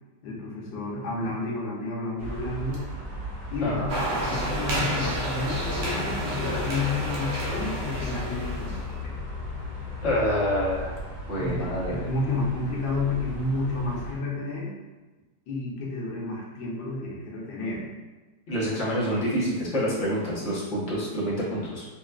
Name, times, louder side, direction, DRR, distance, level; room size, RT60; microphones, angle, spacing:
voice 1, 0.2-2.8 3.5-3.8 4.1-9.1 11.4-14.7 15.5-17.9, left 2 dB, 75° left, -4 dB, 1.6 m, -31 dB
sound 1, 2.2-14.1, right 1 dB, 40° right, 1.0 m, -37 dB
sound 2, 2.7-2.9 3.8-11.8, left 9 dB, 60° right, 0.7 m, -39 dB
sound 3, 3.9-8.9, right 1 dB, 85° right, 1.5 m, -30 dB
voice 2, 10.0-10.9 11.3-12.1 18.5-21.8, equal, 45° left, -8 dB, 1.2 m, -27 dB
5.6 x 2.5 x 2.4 m, 1.2 s
omnidirectional pair, 2.1 m